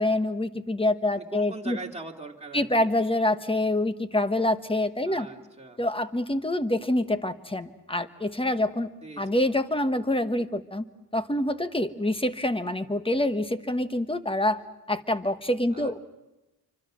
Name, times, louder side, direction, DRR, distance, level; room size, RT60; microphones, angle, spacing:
voice 1, 0.0-1.8 2.5-5.3 5.8-8.9 9.2-10.8 11.1-14.6 14.9-16.0, left 1 dB, 15° left, 10 dB, 1.3 m, -26 dB
voice 2, 1.1-2.9 5.0-5.8 9.0-9.4 15.7-15.9, right 3 dB, 15° right, 1 dB, 2.8 m, -41 dB
28.0 x 25.0 x 6.4 m, 1.0 s
wide cardioid pair, 80°, 37 cm